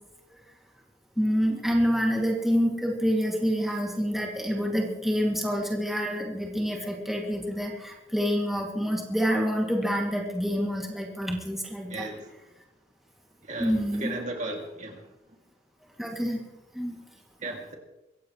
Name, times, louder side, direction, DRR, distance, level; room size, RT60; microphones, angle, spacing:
voice 1, 1.2-12.1 13.6-14.1 16.0-16.4 16.7-17.0, equal, ahead, -2 dB, 2.5 m, -27 dB
voice 2, 11.9-12.3 13.4-15.1 17.4-17.7, right 2 dB, 45° right, 1 dB, 2.7 m, -35 dB
23.5 x 15.5 x 3.2 m, 0.96 s
head